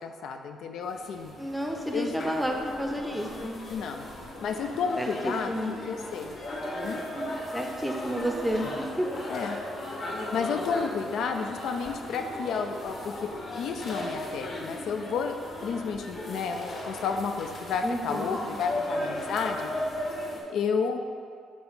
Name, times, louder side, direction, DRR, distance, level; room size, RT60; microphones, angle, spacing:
voice 1, 0.0-1.3 1.9-2.1 3.7-4.1 4.4-5.5 5.9-6.4 6.8-7.0 9.3-9.6 10.3-13.1 13.5-15.4 15.6-19.7 20.5-21.0, left 5 dB, 75° left, 5 dB, 0.4 m, -31 dB
sound 1, 0.8-20.4, left 1 dB, 55° left, 1.4 m, -37 dB
voice 2, 1.4-3.6 5.0-5.8 7.5-9.1 17.8-18.4, equal, 5° right, 2 dB, 0.6 m, -31 dB
6.1 x 2.9 x 5.5 m, 2.2 s
cardioid pair, 110°, 0 cm